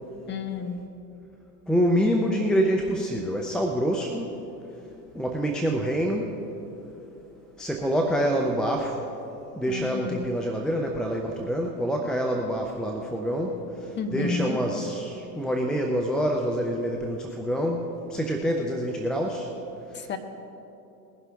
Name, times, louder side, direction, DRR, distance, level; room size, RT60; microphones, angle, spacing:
voice 1, 0.3-0.8 9.7-10.2 14.0-14.6 19.9-20.2, left 5 dB, 20° left, 6 dB, 1.2 m, -31 dB
voice 2, 1.7-4.3 5.1-6.3 7.6-9.0 9.6-13.6 14.1-19.5, equal, ahead, 1 dB, 0.3 m, -26 dB
20.5 x 11.0 x 3.4 m, 2.9 s
hypercardioid pair, 105°, 50 cm